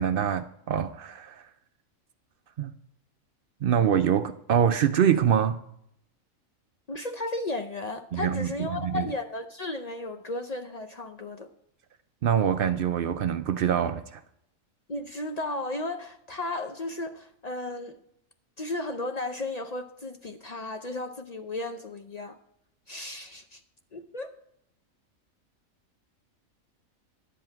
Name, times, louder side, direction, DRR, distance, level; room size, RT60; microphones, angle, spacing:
voice 1, 0.0-1.4 2.6-2.7 3.6-5.6 8.1-9.1 12.2-14.2, right 8 dB, 70° right, 0.5 m, -25 dB
voice 2, 6.9-11.5 14.9-18.0 18.6-22.4 22.9-23.6 23.9-24.3, left 2 dB, 50° left, 0.5 m, -34 dB
11.0 x 7.8 x 4.5 m
omnidirectional pair, 1.4 m